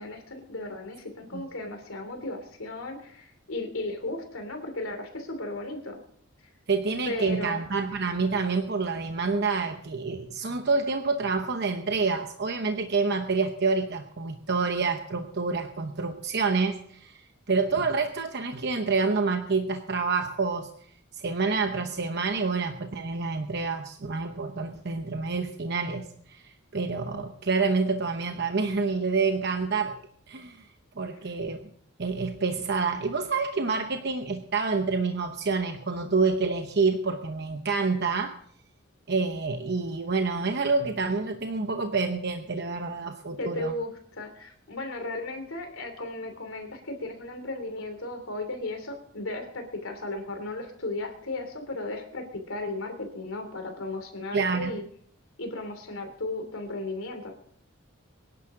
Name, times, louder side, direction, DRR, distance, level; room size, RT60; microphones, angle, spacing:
voice 1, 0.0-6.0 7.0-7.6 43.4-54.8 55.4-57.3, left 2 dB, 80° left, 5 dB, 3.0 m, -35 dB
voice 2, 6.7-17.2 17.5-20.7 21.1-30.0 30.3-30.7 31.0-31.6 32.0-38.3 39.1-43.7 54.3-54.7, right 4 dB, 50° right, 6 dB, 0.9 m, -28 dB
24.5 x 11.0 x 3.8 m, 0.62 s
head